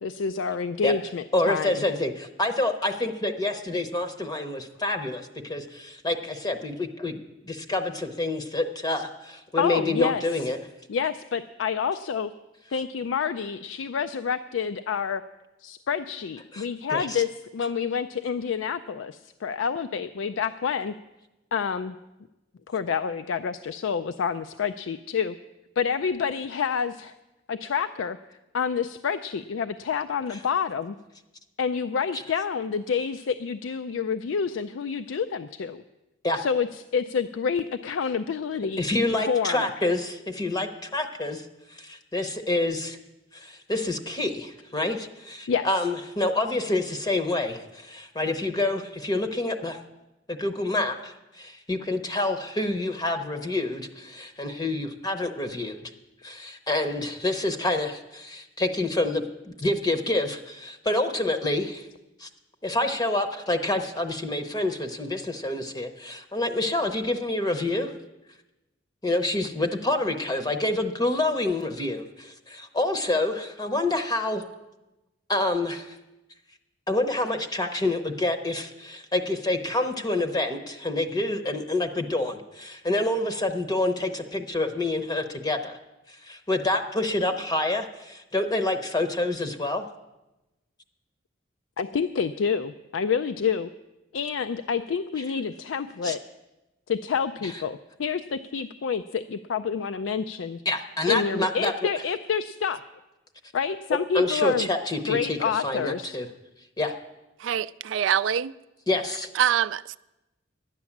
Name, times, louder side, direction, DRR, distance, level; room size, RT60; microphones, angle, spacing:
voice 1, 0.0-1.8 9.6-10.4 10.9-12.3 12.7-15.2 15.6-17.3 17.5-20.9 21.5-22.0 22.7-25.4 25.8-27.2 27.5-28.2 28.5-30.9 31.6-35.8 36.4-36.7 36.9-38.8 39.3-39.7 45.5-45.7 91.8-93.7 94.1-96.2 96.9-100.6 101.1-102.8 103.5-104.7 105.1-106.2, left 6 dB, 80° left, 10 dB, 0.4 m, -28 dB
voice 2, 1.3-7.2 7.5-10.6 16.5-16.7 16.9-17.2 32.1-32.2 36.2-36.4 38.8-41.5 41.7-43.0 43.3-49.8 50.3-55.9 56.2-61.9 62.2-62.3 62.6-67.9 69.0-74.4 75.3-76.0 76.9-85.8 86.1-89.9 96.0-96.2 100.7-101.7 104.1-106.3 106.8-106.9 108.9-109.3, left 2 dB, 20° left, 7 dB, 0.7 m, -27 dB
voice 3, 107.4-108.5 109.4-110.0, right 9 dB, 70° right, 17 dB, 0.3 m, -24 dB
11.5 x 9.8 x 7.2 m, 1.0 s
head